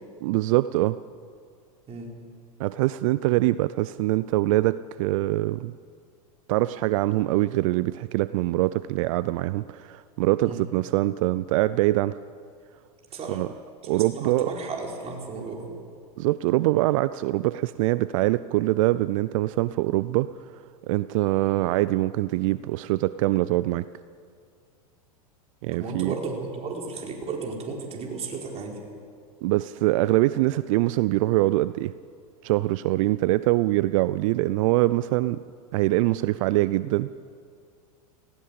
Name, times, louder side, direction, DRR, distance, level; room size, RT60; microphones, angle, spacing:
voice 1, 0.2-1.0 2.6-5.7 6.5-12.2 13.3-13.5 13.8-14.5 16.2-20.3 20.9-23.9 25.6-26.1 29.4-31.9 32.4-35.4 35.7-37.1, right 17 dB, 60° right, 16 dB, 0.5 m, -23 dB
voice 2, 13.8-15.7 25.7-28.8, right 4 dB, 35° right, 0 dB, 4.6 m, -34 dB
20.0 x 16.5 x 8.7 m, 2.2 s
hypercardioid pair, 100°, 19 cm